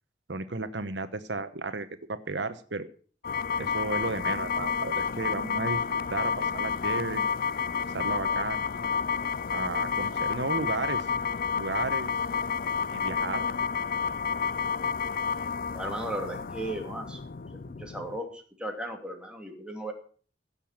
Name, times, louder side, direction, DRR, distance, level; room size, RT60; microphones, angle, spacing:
voice 1, 0.3-2.9 3.6-7.2 7.9-8.6 9.5-11.1 11.6-12.1 12.6-13.5, right 3 dB, 80° right, 11 dB, 1.1 m, -33 dB
sound 1, 3.2-18.2, left 6 dB, 55° left, 0.5 m, -30 dB
voice 2, 15.7-17.2 17.7-19.9, right 1 dB, 5° right, 2 dB, 2.6 m, -36 dB
16.5 x 7.0 x 7.3 m, 0.43 s
head